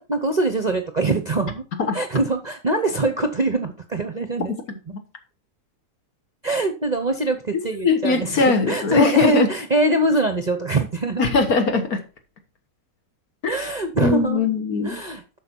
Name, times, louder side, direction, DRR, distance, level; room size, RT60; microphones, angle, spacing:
voice 1, 0.0-1.6 1.9-4.5 6.4-11.3 13.5-14.4 14.8-15.4, right 2 dB, 35° right, 7 dB, 0.7 m, -23 dB
voice 2, 7.7-9.5 11.2-12.0 13.4-13.7 14.0-15.0, left 4 dB, 65° left, 6 dB, 1.9 m, -20 dB
8.2 x 6.2 x 4.5 m, 0.34 s
omnidirectional pair, 1.7 m